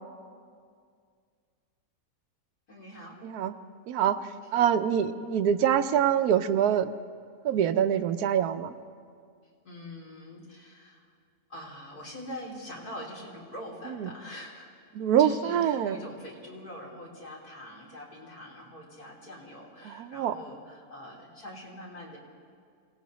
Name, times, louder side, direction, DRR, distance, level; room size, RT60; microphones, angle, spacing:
voice 1, 2.7-3.2 9.6-11.1 11.5-14.7 15.2-22.2, left 1 dB, 75° left, -4 dB, 3.7 m, -44 dB
voice 2, 3.2-3.5 3.9-4.2 4.5-6.9 7.4-8.7 14.0-14.1 14.9-16.0 19.8-20.4, right 9 dB, 85° right, 10 dB, 1.2 m, -25 dB
26.0 x 17.5 x 3.1 m, 2.1 s
omnidirectional pair, 1.6 m